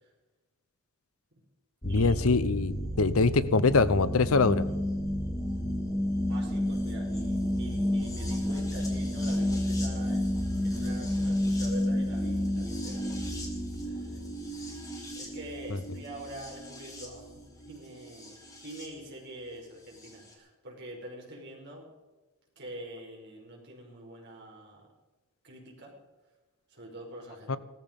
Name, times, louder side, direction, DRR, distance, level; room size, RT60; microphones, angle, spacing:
voice 1, 1.8-4.7 15.7-15.8 27.5-27.6, left 4 dB, 75° left, 15 dB, 0.8 m, -24 dB
sound 1, 1.8-18.9 20.0-20.1, left 1 dB, 15° left, 3.0 m, -31 dB
voice 2, 6.3-13.2 13.8-14.2 14.5-14.7 15.2-17.3 17.6-18.4 18.6-21.8 22.5-24.9 25.4-25.9 26.7-27.6, right 1 dB, 50° right, -1 dB, 5.1 m, -45 dB
17.5 x 14.0 x 5.3 m, 1.2 s
head